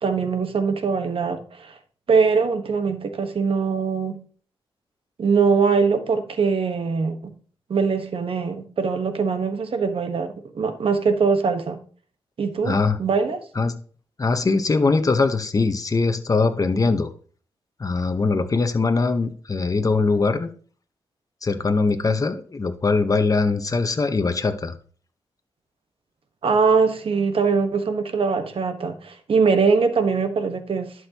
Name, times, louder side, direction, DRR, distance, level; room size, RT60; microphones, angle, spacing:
voice 1, 0.0-1.8 2.1-4.2 5.2-7.3 7.7-11.8 12.4-13.4 26.4-30.9, right 5 dB, 60° right, 1.3 m, -22 dB
voice 2, 12.6-13.0 13.5-13.7 14.2-17.1 17.8-20.5 21.4-24.7, left 3 dB, 35° left, 1.0 m, -21 dB
11.5 x 6.4 x 3.0 m
cardioid pair, 80°, 10 cm